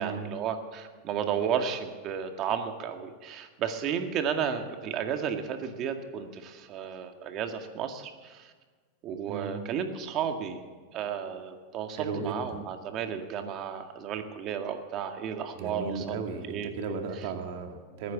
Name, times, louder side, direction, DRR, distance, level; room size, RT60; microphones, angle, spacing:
voice 1, 0.0-8.5 9.0-10.6 10.9-16.7, right 7 dB, 40° right, 6 dB, 2.0 m, -33 dB
voice 2, 12.0-12.6 15.6-18.1, right 5 dB, 65° right, 5 dB, 2.2 m, -35 dB
20.5 x 9.5 x 7.4 m, 1.5 s
hypercardioid pair, 115°, 0 cm